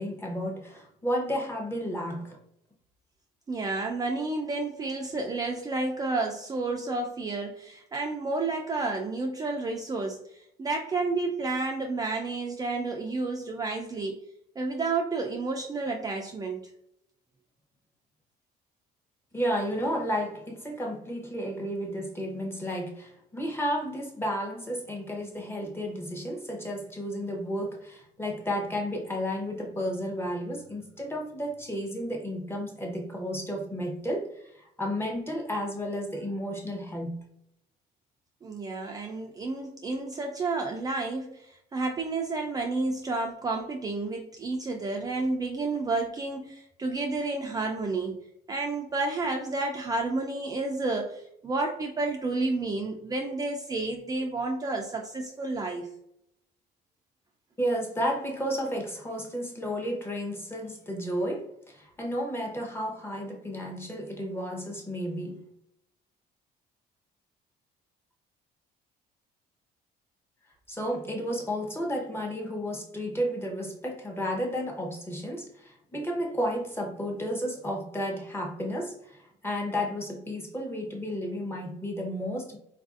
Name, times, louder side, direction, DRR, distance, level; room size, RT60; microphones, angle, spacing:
voice 1, 0.0-2.4 19.3-37.2 57.6-65.5 70.7-82.6, equal, 15° left, 0.8 m, -32 dB
voice 2, 3.5-14.2 14.6-16.7 38.4-48.2 48.5-55.9, right 3 dB, 20° right, 0.3 m, -31 dB
3.9 x 2.5 x 2.4 m
cardioid pair, 110°, 17 cm